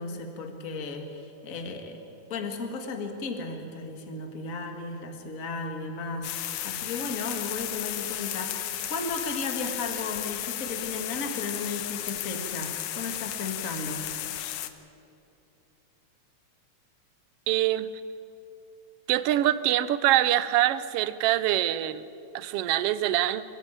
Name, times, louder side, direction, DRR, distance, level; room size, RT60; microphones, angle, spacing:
voice 1, 0.0-2.0 2.3-14.1, left 3 dB, 30° left, 4 dB, 1.9 m, -35 dB
sound 1, 6.2-14.7, left 12 dB, 80° left, 2.2 m, -34 dB
voice 2, 17.5-17.9 19.1-22.0 22.3-23.4, right 13 dB, 75° right, 15 dB, 1.4 m, -24 dB
26.0 x 15.0 x 9.0 m, 2.8 s
omnidirectional pair, 3.4 m